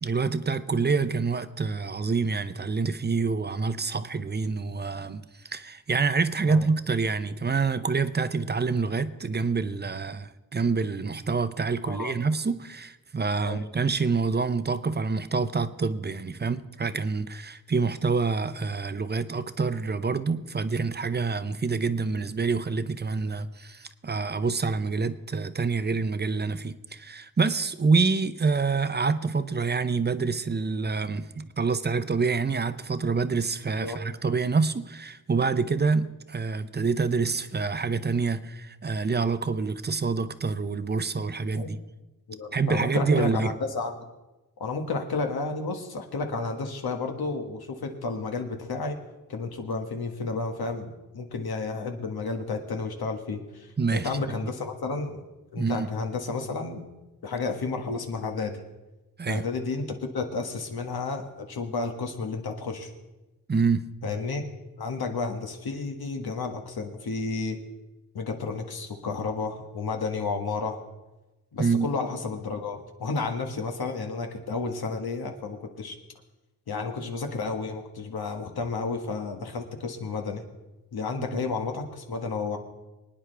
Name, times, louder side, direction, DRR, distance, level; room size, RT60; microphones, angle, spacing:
voice 1, 0.0-41.8 42.5-43.5 53.8-54.2 55.6-55.9 59.2-59.4 63.5-63.9 71.6-71.9 81.2-81.4, right 4 dB, 30° right, 0.6 m, -27 dB
voice 2, 11.8-12.1 13.4-13.7 33.8-34.0 41.5-41.7 42.3-44.0 44.6-49.0 49.3-55.2 55.5-56.9 57.2-58.6 59.3-62.9 64.0-64.4 64.8-67.6 68.1-70.8 71.5-76.0 76.7-80.4 80.9-82.6, left 4 dB, 85° left, 1.6 m, -31 dB
25.0 x 9.7 x 3.4 m
wide cardioid pair, 120°, 37 cm